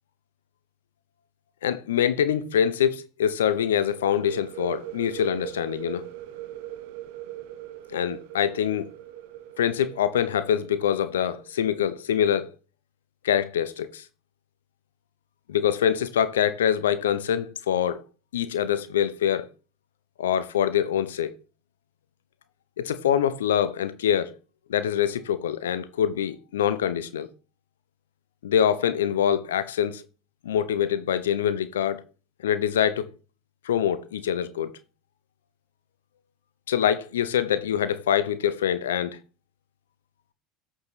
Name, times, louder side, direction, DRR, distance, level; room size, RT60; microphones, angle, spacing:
voice 1, 1.6-6.1 7.9-8.9 9.6-12.5 13.2-14.0 15.5-18.0 18.3-19.5 20.2-21.3 22.8-24.3 24.7-27.3 28.4-30.0 30.4-32.0 32.4-33.1 33.6-34.8 36.7-39.2, left 9 dB, 85° left, 0.6 m, -24 dB
sound 1, 3.9-11.5, right 14 dB, 70° right, 0.9 m, -41 dB
8.4 x 5.0 x 4.0 m
hypercardioid pair, 75°, 0 cm